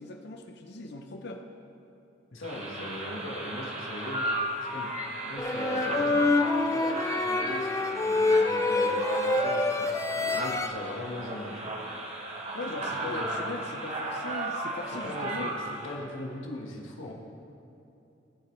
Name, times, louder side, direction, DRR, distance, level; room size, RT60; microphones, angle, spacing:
voice 1, 0.0-1.4 12.5-15.5, left 2 dB, 55° left, 4 dB, 0.7 m, -39 dB
voice 2, 2.3-4.2 4.7-4.9 5.2-6.3 6.6-11.7 13.0-13.3 15.0-17.1, left 1 dB, 85° left, -1 dB, 1.6 m, -40 dB
sound 1, 2.4-16.0, right 1 dB, 35° right, 1.3 m, -35 dB
sound 2, 5.4-10.7, left 2 dB, 15° left, 0.4 m, -26 dB
19.0 x 7.2 x 3.3 m, 2.8 s
head